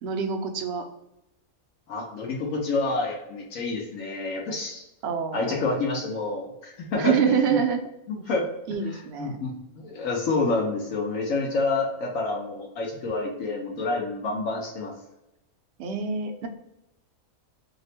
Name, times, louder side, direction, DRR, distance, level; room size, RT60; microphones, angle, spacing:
voice 1, 0.0-0.8 5.0-5.6 7.0-7.8 8.7-9.4 15.8-16.5, right 6 dB, 65° right, 4 dB, 0.7 m, -26 dB
voice 2, 1.9-4.8 5.3-7.6 8.1-8.5 8.9-14.9, left 3 dB, 70° left, 0 dB, 1.0 m, -28 dB
2.9 x 2.1 x 4.1 m, 0.87 s
omnidirectional pair, 1.5 m